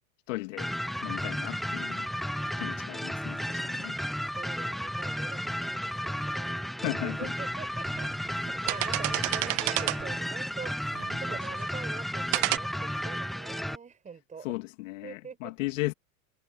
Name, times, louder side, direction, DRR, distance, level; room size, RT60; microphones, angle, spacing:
voice 1, 0.3-2.1 2.6-4.0 6.8-7.3 14.4-15.9, left 21 dB, 60° left, 2.4 m, -36 dB
sound 1, 0.6-13.8, equal, ahead, 0.5 m, -33 dB
voice 2, 1.2-1.6 3.7-14.6 15.0-15.5, right 6 dB, 15° right, 7.5 m, -45 dB
sound 2, 7.0-7.1 7.8-8.1 8.5-10.2 10.9-11.7 12.3-12.6, right 23 dB, 50° right, 1.1 m, -30 dB
supercardioid pair, 135°, 42 cm